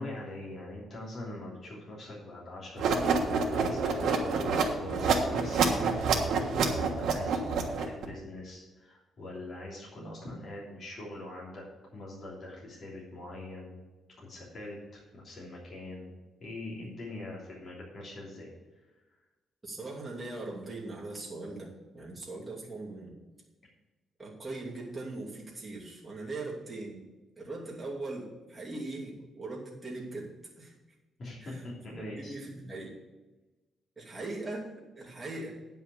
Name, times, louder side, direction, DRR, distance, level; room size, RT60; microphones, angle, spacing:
voice 1, 0.0-6.3 6.6-11.6 11.9-13.8 14.2-16.1 16.4-18.5 31.2-32.3, left 2 dB, 40° left, -5 dB, 3.1 m, -43 dB
sound 1, 2.8-8.0, right 5 dB, 75° right, 1.4 m, -27 dB
voice 2, 19.6-23.2 24.2-27.0 27.4-30.3 30.6-30.7 31.4-31.6 32.0-32.9 34.0-35.5, right 2 dB, 15° right, -5 dB, 2.6 m, -40 dB
9.5 x 5.6 x 6.9 m, 1.1 s
cardioid pair, 150°, 0 cm